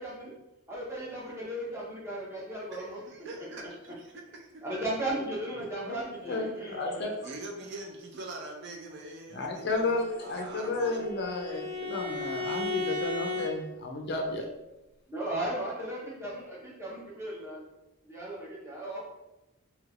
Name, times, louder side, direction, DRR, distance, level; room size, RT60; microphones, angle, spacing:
voice 1, 0.0-0.3 0.7-3.0 4.6-7.1 15.1-17.6 18.0-19.0, right 1 dB, 10° right, -5 dB, 0.7 m, -36 dB
voice 2, 2.7-4.9 5.3-5.4 7.2-11.1, right 2 dB, 50° right, 2 dB, 0.4 m, -43 dB
voice 3, 5.8-7.2 9.3-14.5, left 2 dB, 50° left, 2 dB, 0.4 m, -33 dB
Bowed string instrument, 10.0-13.5, left 3 dB, 80° right, 0.9 m, -35 dB
3.1 x 3.0 x 2.4 m, 0.97 s
head